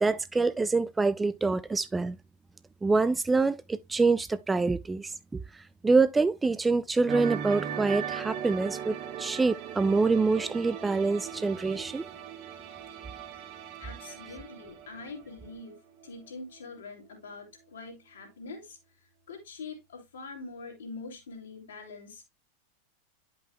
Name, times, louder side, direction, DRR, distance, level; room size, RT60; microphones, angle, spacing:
voice 1, 0.0-2.2 2.8-5.4 5.8-12.0, right 3 dB, 10° right, 0.3 m, -26 dB
sound 1, 7.1-15.8 16.0-16.3, right 8 dB, 40° right, 1.0 m, -38 dB
voice 2, 13.8-22.2, left 3 dB, 65° left, 2.6 m, -44 dB
10.5 x 5.4 x 2.3 m
figure-of-eight pair, 90°, 0 cm